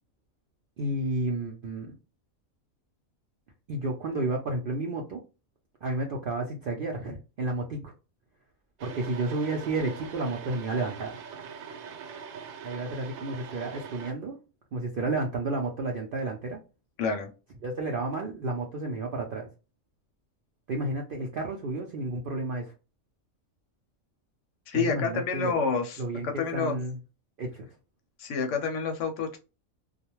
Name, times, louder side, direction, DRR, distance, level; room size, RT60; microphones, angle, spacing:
voice 1, 0.8-1.9 3.7-5.2 5.8-7.9 8.8-11.2 12.6-14.4 14.7-16.6 17.6-19.5 20.7-22.7 24.7-25.6 26.0-27.0 27.4-27.7, right 2 dB, 65° right, 1 dB, 0.5 m, -31 dB
sound 1, 8.8-14.1, right 6 dB, 85° right, 1.0 m, -42 dB
voice 2, 17.0-17.3 24.7-26.8 28.2-29.4, left 5 dB, 70° left, 5 dB, 0.9 m, -29 dB
2.3 x 2.1 x 2.9 m, 0.30 s
omnidirectional pair, 1.4 m